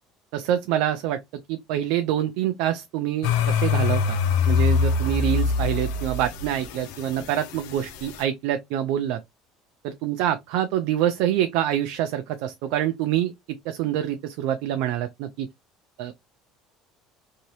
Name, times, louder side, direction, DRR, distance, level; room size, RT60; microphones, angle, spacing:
voice 1, 0.3-4.2 4.5-9.2 9.8-13.3 13.7-15.5 16.0-16.1, right 11 dB, 75° right, 0.4 m, -26 dB
sound 1, 3.2-8.1, left 5 dB, 85° left, 0.6 m, -23 dB
2.8 x 2.7 x 3.1 m
cardioid pair, 145°, 0 cm